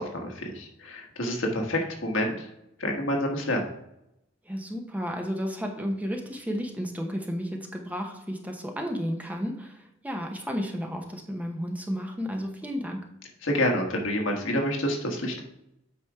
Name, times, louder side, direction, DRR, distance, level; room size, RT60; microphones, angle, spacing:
voice 1, 0.0-2.5 2.8-3.6 13.4-15.4, left 1 dB, 75° left, 1 dB, 1.5 m, -28 dB
voice 2, 4.4-13.0, equal, 10° right, 2 dB, 0.9 m, -32 dB
8.6 x 5.1 x 3.5 m, 0.83 s
head